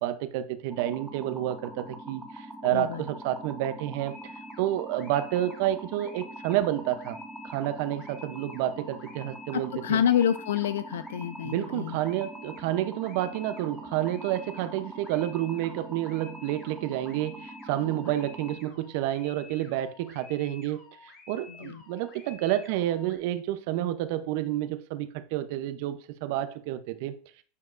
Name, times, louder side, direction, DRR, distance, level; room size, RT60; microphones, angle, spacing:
voice 1, 0.0-4.3 4.6-7.2 7.4-10.0 11.4-27.3, right 13 dB, 60° right, 0.7 m, -30 dB
sound 1, 0.7-18.5, right 1 dB, ahead, 1.5 m, -43 dB
voice 2, 2.6-3.0 9.5-12.0 17.8-18.0 21.5-21.8, left 9 dB, 85° left, 0.3 m, -28 dB
sound 2, 4.1-23.2, left 5 dB, 40° left, 2.2 m, -52 dB
9.5 x 5.2 x 2.6 m
hypercardioid pair, 115°, 0 cm